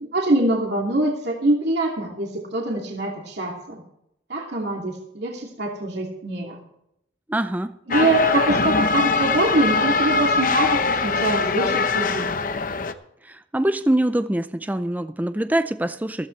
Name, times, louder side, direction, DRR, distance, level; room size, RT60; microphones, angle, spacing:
voice 1, 0.1-3.8 4.3-6.6 7.9-12.3, right 2 dB, 60° right, -1 dB, 2.6 m, -24 dB
voice 2, 7.3-7.7 13.2-16.3, right 1 dB, 10° right, 11 dB, 0.5 m, -24 dB
sound 1, 7.9-12.9, left 4 dB, 50° left, 0.9 m, -22 dB
15.0 x 14.5 x 3.3 m, 0.79 s
head